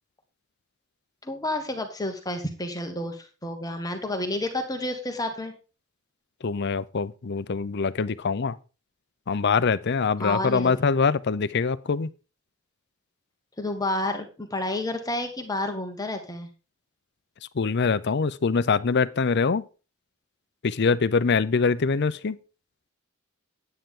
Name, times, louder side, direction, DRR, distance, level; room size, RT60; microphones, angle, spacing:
voice 1, 1.2-5.5 10.2-10.7 13.6-16.5, left 1 dB, 20° left, 1.4 m, -30 dB
voice 2, 6.4-8.6 9.3-12.1 17.6-19.6 20.6-22.4, left 5 dB, 55° left, 0.6 m, -24 dB
9.3 x 9.0 x 3.7 m
head